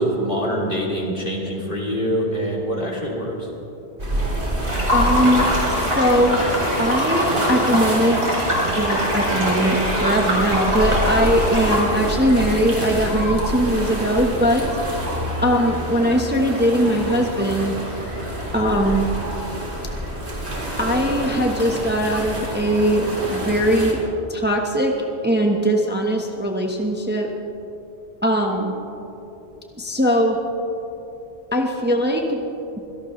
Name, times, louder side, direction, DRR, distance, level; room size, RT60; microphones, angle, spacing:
voice 1, 0.0-3.5, equal, 50° left, -3 dB, 3.2 m, -24 dB
sound 1, 4.0-23.9, equal, 90° right, 3.4 m, -27 dB
sound 2, 4.7-11.8, equal, 65° right, 4.3 m, -23 dB
voice 2, 4.9-5.4 6.0-6.4 6.8-8.2 8.8-14.6 15.4-17.7 18.5-19.1 20.8-23.0 23.3-24.0 24.3-24.9 25.2-27.3 28.2-28.7 29.8-30.4 31.5-32.4, equal, 10° right, 1 dB, 1.2 m, -20 dB
25.0 x 17.5 x 3.2 m, 2.9 s
omnidirectional pair, 1.1 m